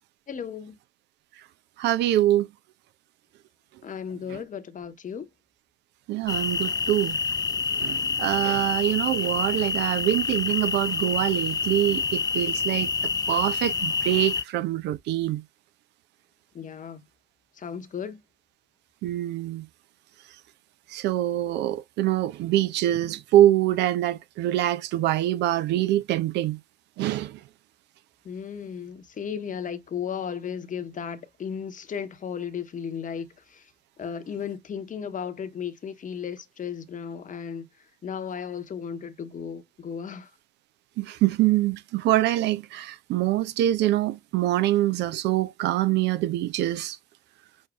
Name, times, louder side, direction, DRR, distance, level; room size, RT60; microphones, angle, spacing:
voice 1, 0.3-0.8 3.8-5.3 16.5-17.0 17.5-18.2 28.2-33.7 34.0-37.7 38.0-40.3, left 7 dB, 45° left, 1.0 m, -35 dB
voice 2, 1.8-2.5 6.1-7.2 7.8-12.9 13.3-15.4 19.0-19.7 20.9-26.6 27.0-27.4 41.0-47.0, right 14 dB, 65° right, 0.5 m, -24 dB
sound 1, 6.3-14.4, left 5 dB, 20° left, 0.4 m, -27 dB
6.3 x 2.6 x 2.3 m
hypercardioid pair, 45°, 19 cm